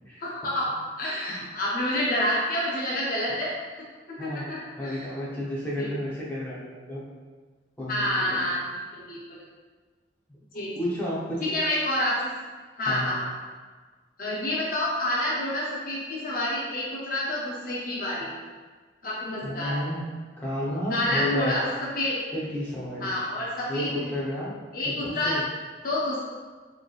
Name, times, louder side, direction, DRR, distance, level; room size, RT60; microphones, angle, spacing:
voice 1, 0.2-0.7 1.0-3.5 3.8-3.9 4.2-4.6 4.8-5.0 5.8-5.9 7.9-8.6 8.9-9.4 10.5-10.7 11.5-12.2 12.8-13.3 14.2-18.3 19.0-19.7 20.9-21.6 21.9-22.2 23.0-23.9 24.7-25.4 25.8-26.2, left 1 dB, 45° left, -5 dB, 0.6 m, -28 dB
voice 2, 4.2-7.1 7.8-8.5 10.7-11.5 12.9-13.1 19.4-20.0 20.4-21.5 22.3-23.1 23.7-24.5 24.8-25.4, left 1 dB, 10° left, -8 dB, 0.9 m, -32 dB
4.9 x 3.1 x 2.4 m, 1.4 s
head